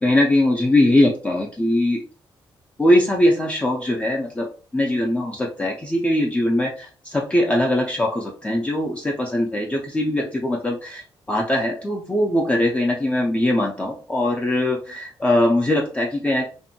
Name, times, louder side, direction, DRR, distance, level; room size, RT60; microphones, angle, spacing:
voice 1, 0.0-2.0 2.8-4.5 4.7-11.0 11.3-16.5, left 1 dB, 15° left, -1 dB, 0.4 m, -21 dB
2.5 x 2.1 x 2.7 m, 0.39 s
wide cardioid pair, 135°, 9 cm